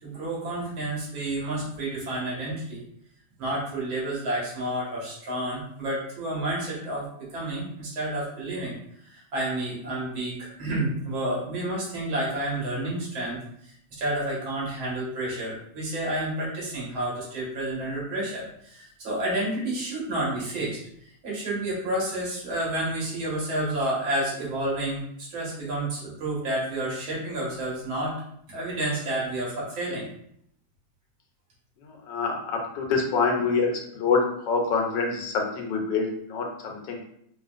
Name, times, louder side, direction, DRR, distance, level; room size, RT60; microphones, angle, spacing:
voice 1, 0.0-2.8 3.4-8.7 9.1-20.8 21.2-28.2 28.5-30.1, right 1 dB, 90° right, -5 dB, 2.2 m, -30 dB
voice 2, 32.1-33.7 33.9-34.2 34.5-37.0, left 5 dB, 75° left, 1 dB, 1.4 m, -25 dB
5.0 x 2.8 x 2.4 m, 0.71 s
omnidirectional pair, 2.1 m